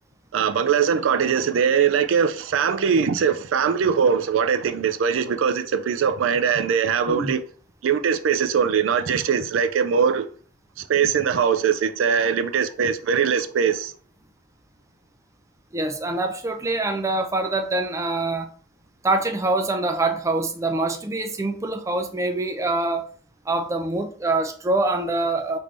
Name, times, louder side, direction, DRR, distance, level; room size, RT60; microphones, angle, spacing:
voice 1, 0.3-7.4 7.8-10.3 10.8-13.9, right 7 dB, 90° right, 0.4 m, -21 dB
voice 2, 15.7-18.5 19.0-23.1 23.5-25.6, right 2 dB, 15° right, 0.4 m, -25 dB
3.4 x 2.6 x 3.3 m
head